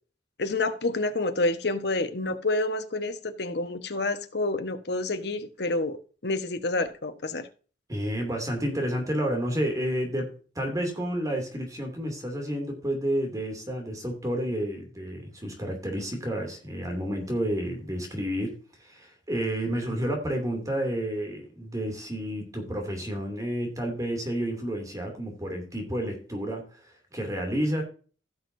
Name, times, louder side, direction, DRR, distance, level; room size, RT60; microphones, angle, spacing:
voice 1, 0.4-6.0 6.2-7.5, left 2 dB, 60° left, 8 dB, 1.2 m, -28 dB
voice 2, 7.9-27.8, equal, 20° right, 2 dB, 2.7 m, -30 dB
16.5 x 6.6 x 2.7 m, 0.39 s
head